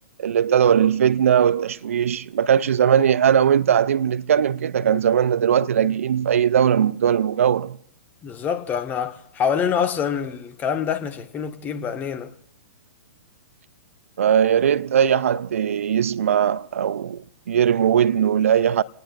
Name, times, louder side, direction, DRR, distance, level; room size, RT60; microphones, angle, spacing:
voice 1, 0.2-7.8 14.2-18.8, right 9 dB, 65° right, 0.5 m, -19 dB
voice 2, 8.2-12.3, left 7 dB, 20° left, 1.5 m, -26 dB
28.5 x 18.5 x 2.6 m
figure-of-eight pair, 115°, 8 cm